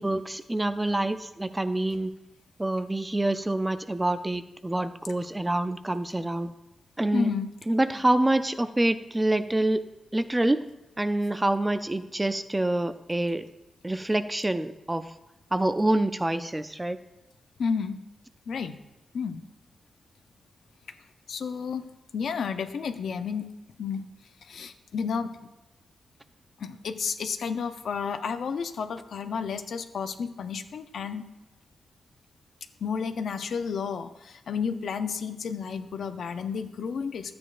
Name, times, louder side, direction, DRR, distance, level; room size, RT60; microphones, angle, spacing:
voice 1, 0.0-2.1 2.6-6.5 7.0-7.3 7.7-9.8 10.1-10.6 11.0-13.4 13.8-15.1 15.5-17.0, right 1 dB, 10° right, 11 dB, 0.4 m, -26 dB
voice 2, 7.1-7.5 17.6-18.0 18.5-18.8 19.1-19.4 21.3-21.9 22.1-23.4 23.8-24.1 24.5-25.4 26.6-31.2 32.8-37.3, left 6 dB, 70° left, 9 dB, 0.5 m, -31 dB
12.0 x 8.5 x 2.5 m, 0.99 s
wide cardioid pair, 125°, 0 cm